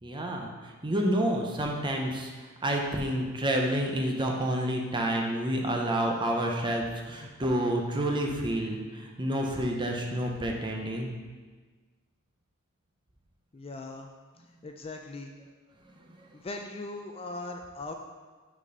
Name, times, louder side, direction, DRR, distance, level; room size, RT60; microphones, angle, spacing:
voice 1, 0.0-11.1 16.2-16.3, right 1 dB, 20° right, 1 dB, 0.7 m, -29 dB
voice 2, 13.5-14.1 14.6-15.3 16.3-17.9, left 2 dB, 25° left, 3 dB, 0.4 m, -39 dB
5.9 x 4.2 x 5.4 m, 1.4 s
head